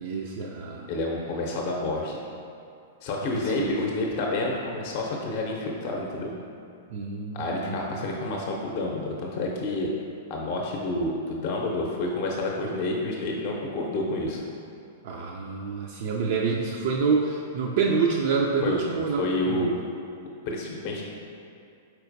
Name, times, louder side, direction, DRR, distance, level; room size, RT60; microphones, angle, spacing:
voice 1, 0.0-0.9 3.3-3.7 6.9-8.0 15.0-19.7, right 5 dB, 50° right, -1 dB, 0.4 m, -27 dB
voice 2, 0.9-2.2 3.0-6.3 7.3-9.9 10.3-14.4 18.6-18.8 19.2-19.8 20.5-21.0, left 2 dB, 45° left, -1 dB, 0.6 m, -29 dB
4.5 x 4.3 x 2.6 m, 2.6 s
figure-of-eight pair, 100°, 0 cm